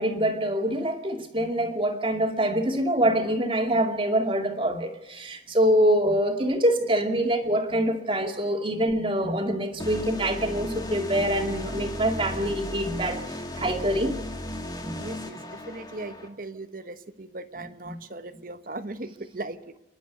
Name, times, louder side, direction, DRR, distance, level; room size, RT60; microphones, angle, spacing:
voice 1, 0.0-14.2 14.8-15.0 17.9-18.0, right 1 dB, 30° right, 4 dB, 2.3 m, -25 dB
sound 1, 9.8-16.3, left 1 dB, 20° left, 2.0 m, -35 dB
voice 2, 15.0-19.8, right 2 dB, 45° right, 11 dB, 1.1 m, -38 dB
28.5 x 11.5 x 8.2 m, 0.97 s
head